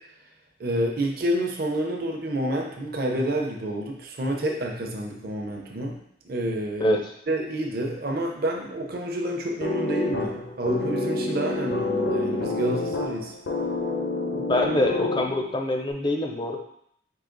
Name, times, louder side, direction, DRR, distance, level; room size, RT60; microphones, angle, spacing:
voice 1, 0.6-6.0 6.2-7.0 7.3-13.3, right 1 dB, 50° right, 0 dB, 0.7 m, -28 dB
voice 2, 6.8-7.1 14.5-16.6, left 1 dB, 25° left, 3 dB, 0.5 m, -24 dB
sound 1, 9.6-15.6, left 2 dB, 75° left, 0.8 m, -28 dB
4.8 x 2.8 x 3.9 m, 0.72 s
head